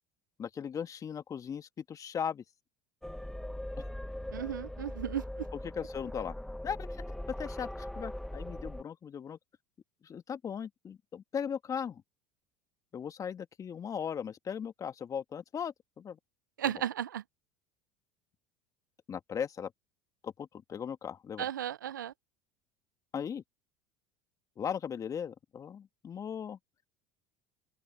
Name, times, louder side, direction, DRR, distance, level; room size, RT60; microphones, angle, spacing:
voice 1, 0.4-2.4 5.6-6.3 6.6-6.9 7.4-9.4 10.0-12.0 12.9-16.2 19.1-19.7 20.2-21.5 23.1-23.4 24.6-26.6, left 7 dB, 35° left, 2.1 m, -38 dB
sound 1, 3.0-8.8, left 1 dB, 5° left, 1.1 m, -40 dB
voice 2, 4.3-5.5 16.6-17.2 21.4-22.1, right 10 dB, 85° right, 0.5 m, -35 dB
open air
hypercardioid pair, 75°, 10 cm